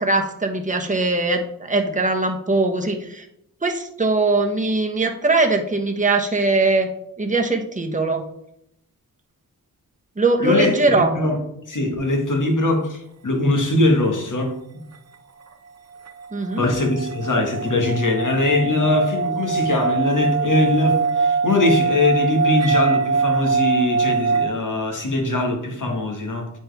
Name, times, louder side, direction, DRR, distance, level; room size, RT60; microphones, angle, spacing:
voice 1, 0.0-3.2 3.6-6.9 7.2-8.2 10.2-11.1 16.3-16.7, right 2 dB, 20° right, 3 dB, 1.0 m, -21 dB
voice 2, 10.4-11.4 11.7-14.5 16.6-26.5, left 2 dB, 55° left, 2 dB, 1.7 m, -21 dB
sound 1, 16.1-24.5, right 5 dB, 45° right, 0.7 m, -23 dB
8.8 x 4.3 x 3.5 m, 0.77 s
cardioid pair, 55°, 37 cm